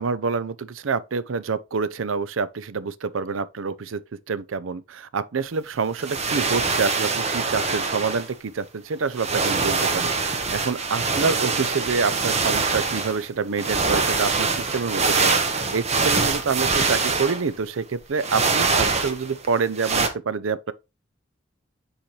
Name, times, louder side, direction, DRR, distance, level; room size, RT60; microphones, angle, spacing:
voice 1, 0.0-4.0 4.3-20.7, right 5 dB, 85° right, 0.5 m, -27 dB
sound 1, 6.0-8.3 9.1-13.2 13.6-17.6 18.2-19.5 19.8-20.1, right 4 dB, 35° right, 0.9 m, -24 dB
7.7 x 4.3 x 3.2 m
head